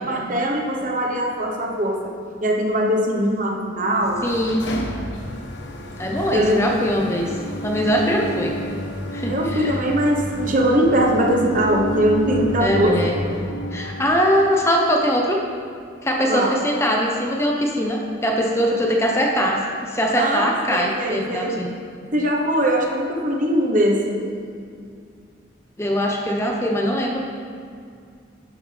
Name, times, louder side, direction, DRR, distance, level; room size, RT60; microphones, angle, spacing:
voice 1, 0.0-2.1 2.4-4.2 6.3-6.7 8.2-8.3 9.3-13.0 16.3-16.6 20.1-21.6 22.1-24.4, right 1 dB, 45° right, 0 dB, 1.2 m, -21 dB
sound 1, 3.9-14.2, equal, 75° left, 1.1 m, -30 dB
voice 2, 4.2-4.6 6.0-7.3 7.6-8.5 9.1-9.8 12.6-13.1 13.7-15.4 16.0-19.6 19.8-21.7 25.8-27.2, equal, 15° left, -1 dB, 0.9 m, -21 dB
11.5 x 10.0 x 3.5 m, 2.2 s
head